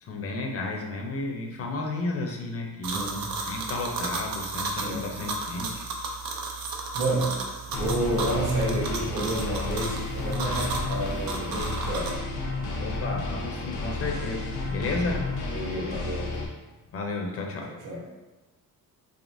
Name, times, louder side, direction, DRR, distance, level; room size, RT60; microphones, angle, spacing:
voice 1, 0.0-3.0 3.4-5.9 12.8-15.3 16.9-17.7, left 2 dB, 40° left, 1 dB, 0.7 m, -32 dB
sound 1, 2.8-12.2, right 3 dB, 65° right, 0.7 m, -34 dB
voice 2, 2.9-3.3 4.8-5.0 6.9-7.4 7.7-12.2 15.4-16.3 17.7-18.0, right 1 dB, 90° right, -5 dB, 1.4 m, -30 dB
sound 2, 7.7-16.4, left 3 dB, 90° left, 0.9 m, -32 dB
5.0 x 2.7 x 2.6 m, 1.2 s
cardioid pair, 135°, 37 cm